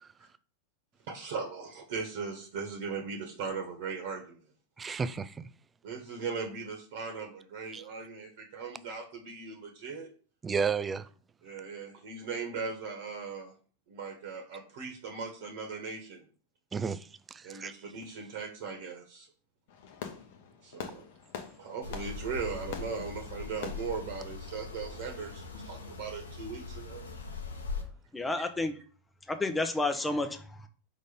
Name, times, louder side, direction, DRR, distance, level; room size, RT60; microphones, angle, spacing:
voice 1, 1.1-4.4 5.8-10.1 11.4-13.5 13.9-16.2 17.4-19.3 20.6-21.0 21.6-27.1 28.4-28.5, right 5 dB, 50° right, 1.4 m, -38 dB
voice 2, 4.8-5.5 7.7-7.8 10.4-11.1 16.7-17.7, right 5 dB, 15° right, 0.4 m, -33 dB
Fireworks, 19.7-25.3, left 7 dB, 50° left, 0.9 m, -45 dB
sound 1, 21.8-27.8, left 4 dB, 75° left, 1.1 m, -41 dB
voice 3, 28.1-28.8 29.3-30.7, left 2 dB, 10° left, 0.9 m, -31 dB
5.2 x 4.0 x 5.2 m
figure-of-eight pair, 90°, 0 cm